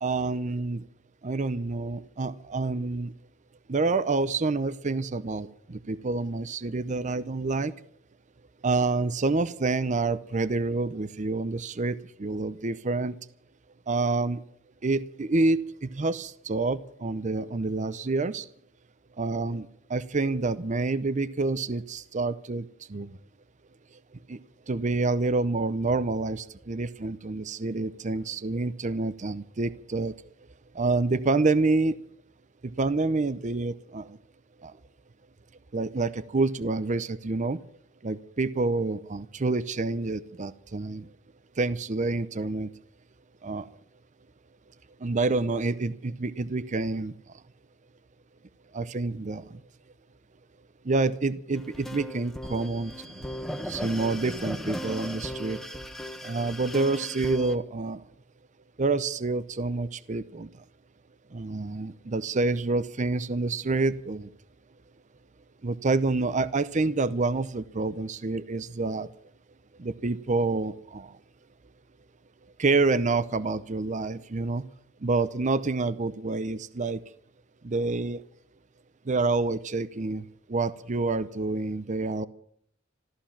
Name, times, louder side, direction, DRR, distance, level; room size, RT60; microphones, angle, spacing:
voice 1, 0.0-0.8 1.2-3.1 3.7-7.7 8.6-13.1 13.9-14.4 14.8-18.4 19.2-22.6 22.9-23.2 24.3-24.4 24.7-30.1 30.8-32.0 32.6-34.1 34.6-34.7 35.7-37.6 38.0-41.1 41.6-42.7 43.4-43.7 45.0-47.1 48.7-49.4 50.9-52.9 53.7-55.6 56.2-58.0 58.8-60.5 61.3-64.3 65.6-69.1 69.8-71.1 72.6-74.6 75.0-77.0 77.6-78.2 79.1-80.2 80.5-82.3, right 3 dB, 40° right, 16 dB, 0.6 m, -28 dB
sound 1, 51.5-57.6, equal, ahead, 1.1 m, -37 dB
14.5 x 13.5 x 7.2 m, 0.66 s
head